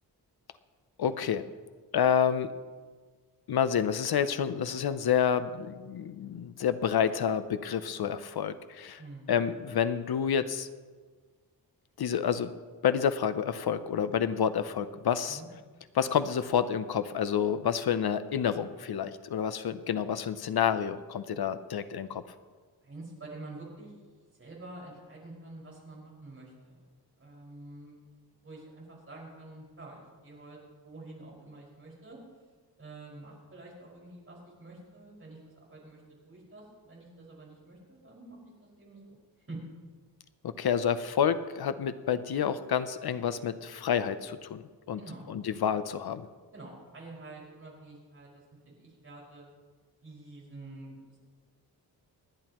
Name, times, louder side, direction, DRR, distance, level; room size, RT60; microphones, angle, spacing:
voice 1, 1.0-1.4 1.9-2.5 3.5-9.0 9.3-10.7 12.0-12.5 12.8-15.4 15.9-22.2 40.4-44.6 44.9-45.0 45.3-46.3, left 8 dB, 70° left, 12 dB, 0.7 m, -29 dB
voice 2, 9.0-9.3 15.3-15.5 22.8-23.9 24.4-26.8 27.2-28.0 28.4-32.2 32.8-39.2 39.5-39.6 45.0-45.3 46.5-49.5 50.0-51.2, right 2 dB, 35° right, -5 dB, 5.3 m, -48 dB
28.5 x 10.5 x 3.0 m, 1.4 s
wide cardioid pair, 180°, 40 cm